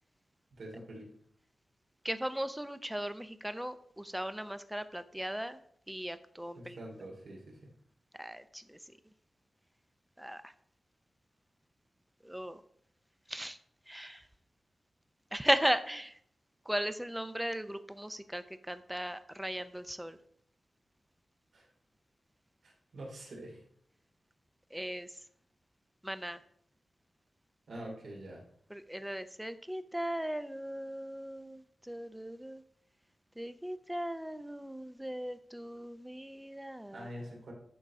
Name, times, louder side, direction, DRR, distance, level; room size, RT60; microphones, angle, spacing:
voice 1, 0.5-1.1 6.5-7.6 21.5-21.7 22.6-23.6 27.7-28.4 36.9-37.5, right 1 dB, 80° right, -2 dB, 2.7 m, -45 dB
voice 2, 2.0-5.6 5.9-6.8 8.2-8.8 10.2-10.5 12.2-12.6 13.3-13.6 13.9-14.3 15.3-16.1 16.7-20.2 24.7-25.1 26.0-26.4 28.7-32.6 33.4-37.1, equal, 5° right, 12 dB, 0.5 m, -37 dB
10.5 x 3.8 x 4.7 m, 0.65 s
wide cardioid pair, 150°, 0 cm